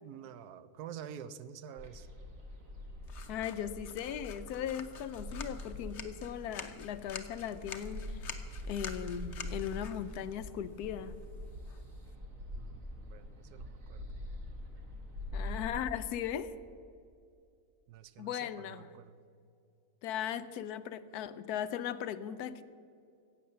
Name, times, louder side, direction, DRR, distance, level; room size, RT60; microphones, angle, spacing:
voice 1, 0.0-2.1 12.5-14.2 15.5-15.6 17.9-19.2, right 9 dB, 80° right, 13 dB, 1.2 m, -48 dB
sound 1, 1.8-15.7, left 1 dB, 60° right, 2.0 m, -44 dB
sound 2, 3.1-12.2, left 6 dB, 55° left, 1.1 m, -49 dB
voice 2, 3.3-8.2 8.7-11.1 15.3-16.5 18.2-18.9 20.0-22.6, left 9 dB, 85° left, 13 dB, 1.1 m, -38 dB
15.5 x 8.4 x 6.6 m, 2.5 s
omnidirectional pair, 1.6 m